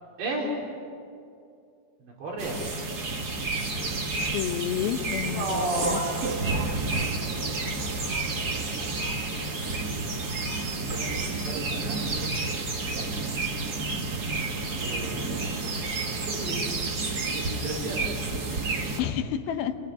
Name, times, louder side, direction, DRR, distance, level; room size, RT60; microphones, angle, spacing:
voice 1, 0.2-0.5 2.0-2.6 5.3-6.1 10.9-12.1 12.9-13.1 14.8-17.0 17.4-18.2, right 2 dB, 80° right, -2 dB, 6.8 m, -34 dB
sound 1, 2.4-19.0, right 3 dB, 55° right, 1.0 m, -30 dB
voice 2, 4.2-6.0 19.0-19.8, left 10 dB, 70° left, 8 dB, 2.7 m, -30 dB
28.5 x 19.5 x 9.6 m, 2.5 s
omnidirectional pair, 5.0 m